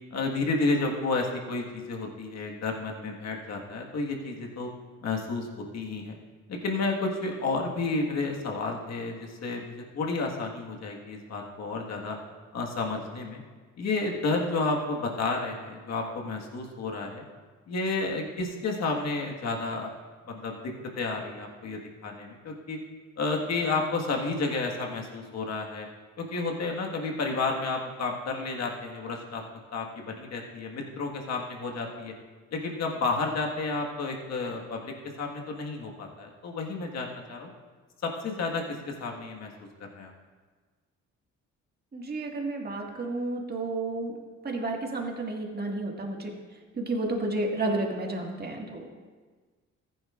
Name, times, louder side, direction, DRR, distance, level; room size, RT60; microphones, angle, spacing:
voice 1, 0.1-4.7 5.0-6.2 6.5-12.2 12.5-13.4 13.8-17.2 17.7-19.9 20.3-22.8 23.2-25.9 26.2-29.4 29.7-32.1 32.5-37.5 38.0-39.5 39.9-40.1, left 3 dB, 60° left, 0 dB, 1.7 m, -31 dB
voice 2, 41.9-44.1 44.4-46.3 46.8-48.9, right 2 dB, 30° right, 0 dB, 1.9 m, -31 dB
14.5 x 10.5 x 2.5 m, 1.4 s
cardioid pair, 90°, 30 cm